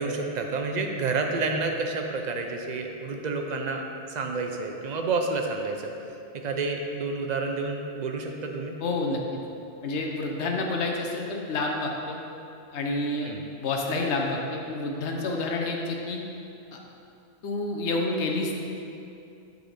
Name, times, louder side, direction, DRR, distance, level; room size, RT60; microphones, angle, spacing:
voice 1, 0.0-3.8 4.1-5.9 6.4-8.8 13.2-13.4, right 3 dB, 50° right, 3 dB, 0.6 m, -29 dB
voice 2, 8.8-9.2 9.8-12.2 12.7-16.2 16.7-16.8 17.4-18.6, left 2 dB, 80° left, 1 dB, 1.0 m, -29 dB
7.8 x 3.9 x 5.0 m, 2.7 s
omnidirectional pair, 1.1 m